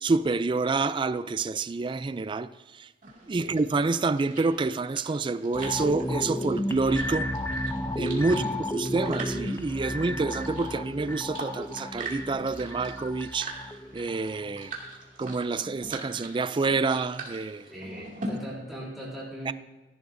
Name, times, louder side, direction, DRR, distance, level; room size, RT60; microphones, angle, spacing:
voice 1, 0.0-2.5 2.8-2.9 3.3-7.3 7.9-8.4 8.7-13.6 13.9-14.7 15.2-17.6 19.5-19.6, right 3 dB, 30° right, 0.3 m, -28 dB
sound 1, 3.0-18.3, right 3 dB, 50° right, 2.4 m, -43 dB
sound 2, 5.5-14.8 15.2-15.3, left 1 dB, 15° left, 0.6 m, -33 dB
voice 2, 8.2-8.6 17.7-19.5, equal, ahead, 3.3 m, -39 dB
16.0 x 11.0 x 2.7 m
head